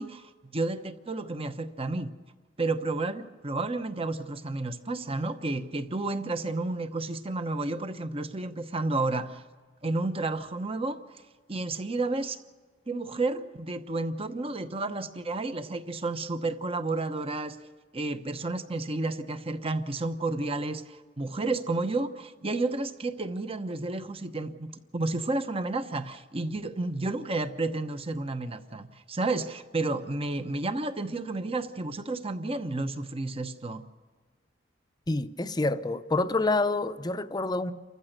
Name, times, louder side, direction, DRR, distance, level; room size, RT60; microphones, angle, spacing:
voice 1, 0.0-2.1 2.6-9.4 9.8-11.0 11.5-12.4 12.9-17.6 17.9-33.8, right 2 dB, 35° right, 1.0 m, -31 dB
voice 2, 35.1-37.7, left 2 dB, 25° left, 0.7 m, -27 dB
28.5 x 15.0 x 6.7 m
head